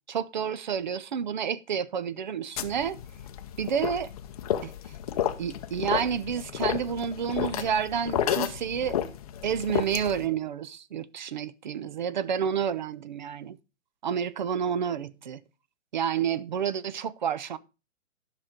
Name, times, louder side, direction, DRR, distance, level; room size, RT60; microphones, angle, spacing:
voice 1, 0.1-3.0 3.6-4.1 4.6-4.7 5.4-9.0 9.4-13.6 14.0-15.4 15.9-17.6, right 7 dB, 40° right, 0.4 m, -29 dB
sound 1, 2.6-10.3, left 10 dB, 30° left, 0.6 m, -32 dB
10.5 x 6.0 x 4.9 m
hypercardioid pair, 155°, 38 cm